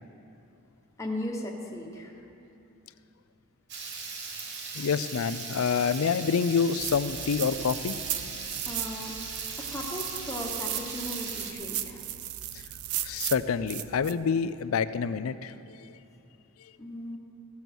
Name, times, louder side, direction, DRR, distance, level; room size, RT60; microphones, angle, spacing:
voice 1, 1.0-2.1 8.6-9.1 9.6-12.1 16.8-17.2, left 1 dB, 15° left, -1 dB, 1.1 m, -37 dB
Water tap faucet / Liquid, 3.7-11.5, right 4 dB, 55° right, 1.1 m, -39 dB
voice 2, 4.7-8.0 13.0-15.5, left 6 dB, 80° left, 14 dB, 0.4 m, -27 dB
sound 1, 6.8-14.1, right 12 dB, 90° right, 0.5 m, -36 dB
15.0 x 7.1 x 6.1 m, 2.7 s
head